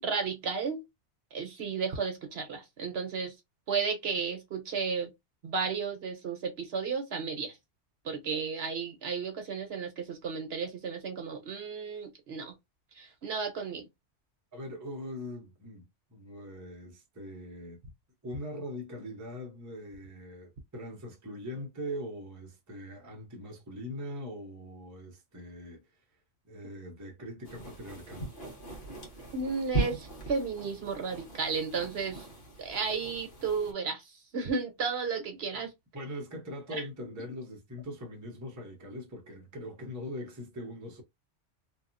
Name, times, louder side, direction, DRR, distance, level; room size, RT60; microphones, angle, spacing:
voice 1, 0.0-0.8 1.3-3.3 3.7-5.1 5.4-7.6 8.0-12.5 12.9-13.8 29.3-32.2 32.6-35.7 36.7-36.8, right 5 dB, 60° right, 1.0 m, -33 dB
voice 2, 14.5-17.8 18.2-25.9 26.4-28.4 35.9-41.0, equal, 20° right, 0.7 m, -41 dB
sound 1, 27.4-33.7, right 2 dB, 55° left, 1.3 m, -39 dB
2.9 x 2.3 x 2.5 m
omnidirectional pair, 1.2 m